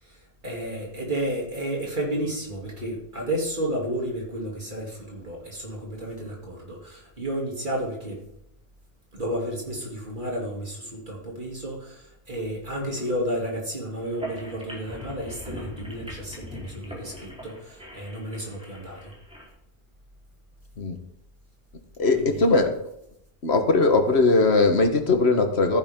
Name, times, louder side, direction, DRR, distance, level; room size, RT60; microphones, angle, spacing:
voice 1, 0.0-8.2 9.1-19.1 22.1-22.5, right 1 dB, 45° right, -1 dB, 3.3 m, -32 dB
sound 1, 14.0-19.5, equal, 5° right, 4.1 m, -41 dB
voice 2, 22.0-22.7 23.4-25.8, left 3 dB, 75° left, 6 dB, 1.7 m, -20 dB
14.5 x 10.0 x 3.8 m, 0.77 s
omnidirectional pair, 1.1 m